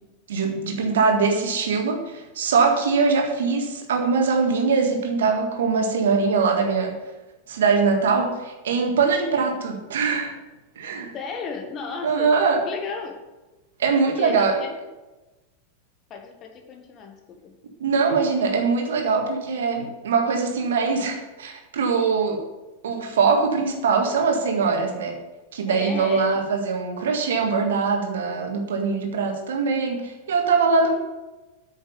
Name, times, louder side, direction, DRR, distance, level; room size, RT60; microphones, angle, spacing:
voice 1, 0.3-6.9 7.5-10.3 10.8-11.1 12.0-12.6 13.8-14.6 17.8-22.4 22.8-25.2 25.5-31.0, right 4 dB, 60° right, 3 dB, 1.7 m, -22 dB
voice 2, 11.1-12.4 12.6-13.1 14.1-14.7 16.1-17.6 25.6-26.3, left 5 dB, 30° left, 4 dB, 1.6 m, -34 dB
9.0 x 6.5 x 7.0 m, 1.1 s
figure-of-eight pair, 90°, 0 cm